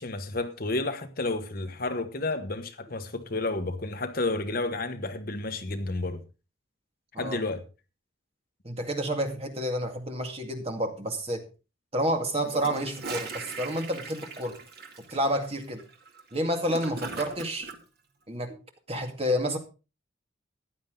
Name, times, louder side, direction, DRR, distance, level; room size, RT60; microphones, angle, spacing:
voice 1, 0.0-6.2 7.2-7.6, left 2 dB, 45° left, 1.3 m, -31 dB
voice 2, 8.6-11.4 11.9-14.5 15.1-15.8 16.3-17.7 18.3-18.6 18.9-19.6, equal, 30° right, 2.2 m, -29 dB
Gurgling / Toilet flush, 12.4-17.8, right 4 dB, 55° right, 2.2 m, -40 dB
15.0 x 10.5 x 3.9 m
head